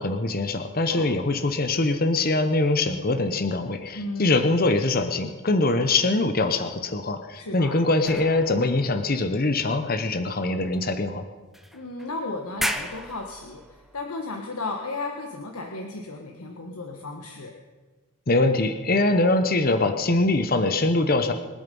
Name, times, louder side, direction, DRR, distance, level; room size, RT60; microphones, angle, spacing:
voice 1, 0.0-11.2 18.3-21.3, left 2 dB, 40° left, 8 dB, 0.9 m, -23 dB
voice 2, 0.9-1.2 3.9-4.6 7.3-7.9 11.7-17.5, left 3 dB, 85° left, 2 dB, 1.4 m, -34 dB
sound 1, 8.0-10.0 10.7-10.8 11.5-12.1 12.5-14.0, equal, ahead, 0.7 m, -35 dB
26.0 x 8.9 x 5.4 m, 1.3 s
head